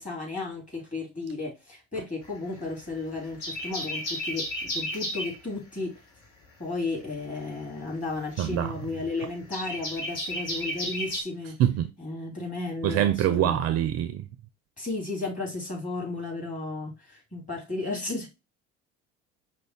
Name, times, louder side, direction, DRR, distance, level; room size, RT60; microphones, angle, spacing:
voice 1, 0.0-5.9 6.6-11.6 12.0-13.6 14.8-18.3, left 3 dB, 20° left, 2.7 m, -34 dB
sound 1, 2.2-2.9 3.2-5.4 7.0-11.2, equal, 55° left, 1.6 m, -33 dB
voice 2, 8.4-8.7 11.6-11.9 12.8-14.2, right 11 dB, 45° right, 0.5 m, -24 dB
5.1 x 2.2 x 4.2 m
figure-of-eight pair, 55°, 38 cm